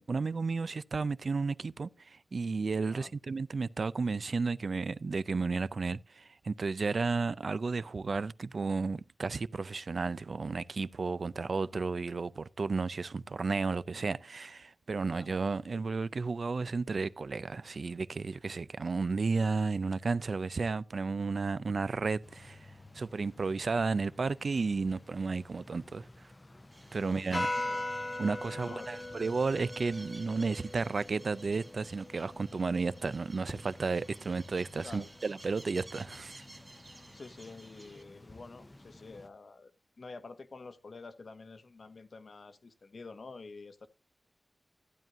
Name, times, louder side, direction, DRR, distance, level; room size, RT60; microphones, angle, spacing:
voice 1, 0.0-26.1 26.9-27.5 28.2-36.4, right 4 dB, 65° right, 0.4 m, -33 dB
sound 1, 22.2-39.3, left 1 dB, 25° left, 0.6 m, -44 dB
sound 2, 26.7-38.0, right 2 dB, 30° right, 1.4 m, -53 dB
voice 2, 26.9-27.3 27.5-27.8 28.5-28.9 34.8-35.1 37.1-39.7 40.0-43.9, left 3 dB, 70° left, 1.1 m, -48 dB
15.0 x 9.1 x 2.5 m
wide cardioid pair, 110°, 0 cm